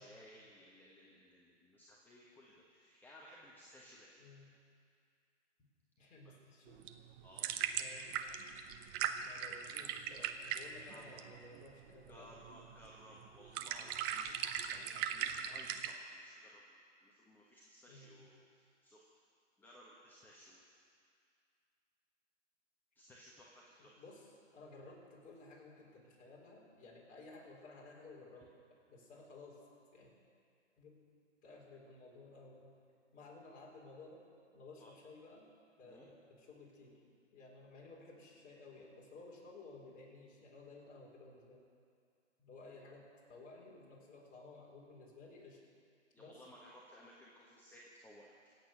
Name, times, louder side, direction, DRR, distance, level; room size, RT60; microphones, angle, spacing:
voice 1, 0.0-4.2 6.2-6.4 7.2-7.5 10.9-11.2 12.1-16.6 17.0-19.0 19.6-20.8 22.9-24.0 34.8-34.9 35.8-36.1 46.1-48.6, equal, 5° left, -4 dB, 1.4 m, -59 dB
voice 2, 6.0-6.8 7.8-8.1 9.1-12.6 17.9-18.2 23.8-24.3 24.5-28.5 28.9-29.6 29.9-30.1 30.8-31.0 31.4-32.7 33.1-34.2 34.5-35.5 35.8-37.0 37.3-41.6 42.4-45.6 46.2-46.4, left 3 dB, 20° left, -3 dB, 4.4 m, -55 dB
sound 1, 6.7-16.0, right 9 dB, 20° right, 0.5 m, -40 dB
25.5 x 8.7 x 6.2 m, 2.3 s
hypercardioid pair, 130°, 36 cm